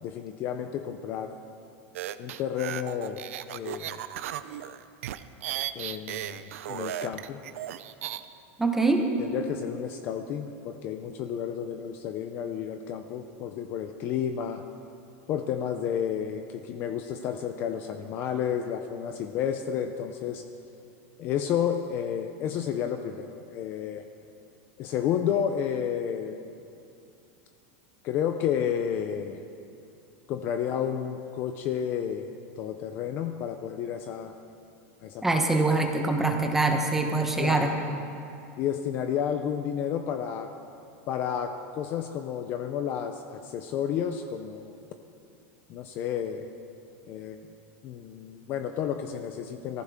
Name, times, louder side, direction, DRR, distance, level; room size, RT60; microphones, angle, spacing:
voice 1, 0.0-1.4 2.2-3.2 3.5-4.0 5.7-6.4 6.7-7.4 9.2-14.6 15.3-20.4 21.2-24.0 24.8-26.4 28.0-29.4 30.3-34.3 35.0-35.4 37.4-37.8 38.6-40.5 41.1-44.8 45.7-46.5 47.1-47.4 47.8-49.8, left 8 dB, 30° left, 7 dB, 0.5 m, -31 dB
sound 1, 1.9-8.2, right 12 dB, 80° right, 0.6 m, -35 dB
voice 2, 8.6-9.1 35.2-37.7, right 3 dB, 5° right, 3 dB, 1.0 m, -24 dB
23.0 x 14.5 x 3.6 m, 2.6 s
supercardioid pair, 180°, 7 cm